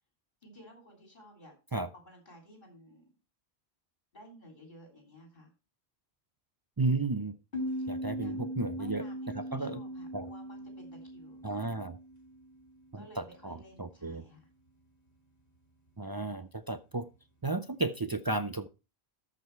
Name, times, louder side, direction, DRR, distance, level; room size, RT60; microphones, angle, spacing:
voice 1, 0.4-1.5 2.0-3.1 4.1-5.5 8.2-11.4 12.9-14.5, equal, 45° left, 3.2 m, -54 dB
voice 2, 6.8-7.3 7.9-9.0 9.3-9.8 10.1-10.3 11.4-12.0 12.9-14.2 16.0-17.1 17.4-18.7, right 3 dB, 35° right, 0.4 m, -33 dB
sound 1, 7.5-12.9, equal, 65° left, 2.1 m, -39 dB
13.5 x 5.0 x 4.4 m
omnidirectional pair, 1.1 m